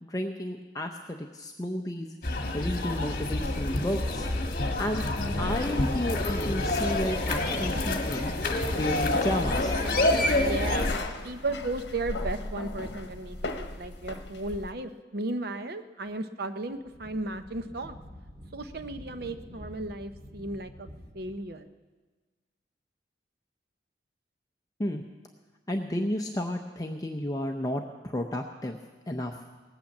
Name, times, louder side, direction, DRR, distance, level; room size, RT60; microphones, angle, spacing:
voice 1, 0.0-2.1 2.5-4.3 4.8-5.1 5.4-8.3 8.7-9.7 24.8-25.0 25.7-28.8 29.1-29.4, left 1 dB, 20° left, 3 dB, 0.6 m, -32 dB
sound 1, 2.2-10.9, left 2 dB, 55° left, 1.5 m, -28 dB
sound 2, 4.1-14.7, left 2 dB, 75° left, 1.0 m, -38 dB
voice 2, 10.4-10.9 11.2-18.0 18.5-20.9 21.1-21.7, right 2 dB, 60° right, 9 dB, 0.8 m, -35 dB
Wind, 16.6-21.5, equal, 30° right, 2.4 m, -47 dB
19.0 x 8.9 x 7.2 m, 1.3 s
head